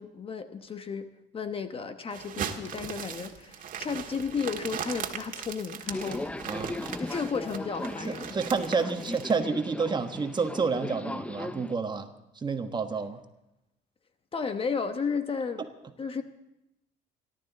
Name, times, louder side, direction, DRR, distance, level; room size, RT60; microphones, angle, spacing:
voice 1, 0.0-6.2 7.0-8.4 14.3-15.7 16.0-16.2, left 5 dB, 35° left, 9 dB, 1.0 m, -33 dB
sound 1, 2.1-9.4, right 8 dB, 55° right, 1.7 m, -38 dB
Subway metro underground, 5.9-11.8, left 2 dB, 5° left, 0.5 m, -38 dB
voice 2, 6.4-6.8 8.1-12.1 12.3-13.2, right 5 dB, 25° right, 6 dB, 1.4 m, -29 dB
28.5 x 12.0 x 4.1 m, 0.89 s
cardioid pair, 110°, 17 cm